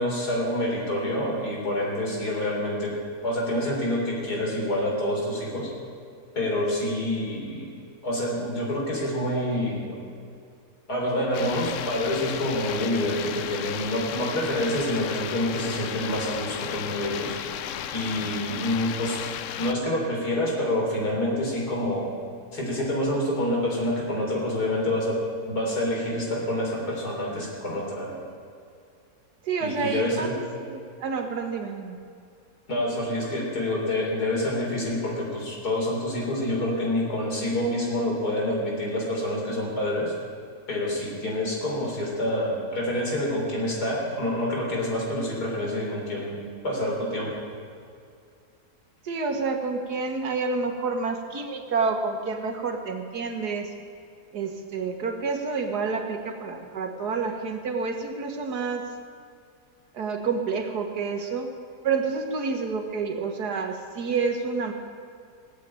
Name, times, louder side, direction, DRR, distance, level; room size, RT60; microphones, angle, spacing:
voice 1, 0.0-5.7 6.4-7.6 8.0-10.0 10.9-17.3 17.9-19.2 19.6-22.1 22.5-25.2 25.5-28.2 29.6-30.3 32.7-40.1 40.7-46.4 46.6-47.3, left 1 dB, 85° left, -2 dB, 4.1 m, -27 dB
sound 1, 11.3-19.7, left 9 dB, 65° left, 0.9 m, -34 dB
voice 2, 29.4-32.0 49.0-53.7 54.3-58.9 59.9-61.5 61.8-64.7, right 4 dB, 90° right, 5 dB, 2.0 m, -29 dB
18.0 x 8.3 x 8.9 m, 2.4 s
omnidirectional pair, 1.7 m